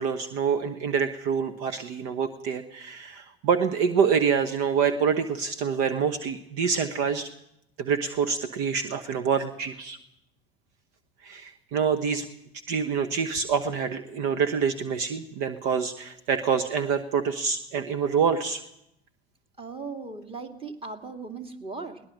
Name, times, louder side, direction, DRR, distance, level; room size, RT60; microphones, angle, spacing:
voice 1, 0.0-7.3 7.8-10.0 11.2-12.3 12.7-18.6, right 6 dB, 50° right, 11 dB, 1.2 m, -26 dB
voice 2, 19.6-22.0, right 4 dB, 15° right, 6 dB, 2.3 m, -38 dB
21.5 x 19.0 x 6.4 m, 0.79 s
figure-of-eight pair, 80°, 32 cm